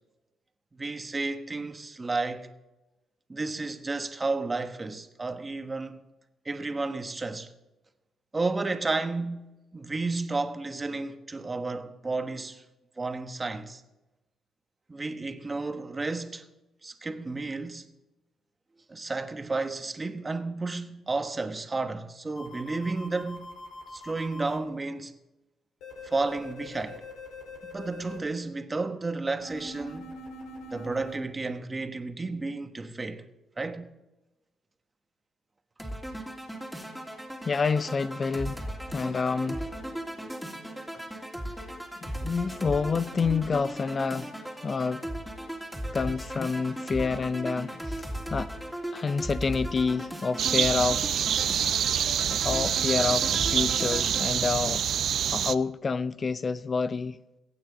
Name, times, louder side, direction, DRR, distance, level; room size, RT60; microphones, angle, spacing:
voice 1, 0.8-2.5 3.3-6.0 6.4-7.5 8.3-9.5 9.7-12.6 13.0-13.8 14.9-16.4 16.8-17.8 18.9-23.5 23.9-25.1 26.0-27.0 27.7-30.2 30.7-33.2 33.6-33.9, right 3 dB, 25° right, 1.1 m, -32 dB
sound 1, 22.4-24.6 25.8-28.2 29.4-31.2, left 2 dB, 90° left, 4.6 m, -43 dB
sound 2, 35.8-54.3, equal, ahead, 2.8 m, -37 dB
voice 2, 37.5-39.8 42.0-44.3 44.6-45.1 45.9-48.5 48.9-51.1 52.3-57.2, left 5 dB, 35° left, 0.4 m, -28 dB
sound 3, 50.4-55.6, right 9 dB, 65° right, 0.5 m, -26 dB
23.0 x 8.9 x 4.0 m
cardioid pair, 90°, 0 cm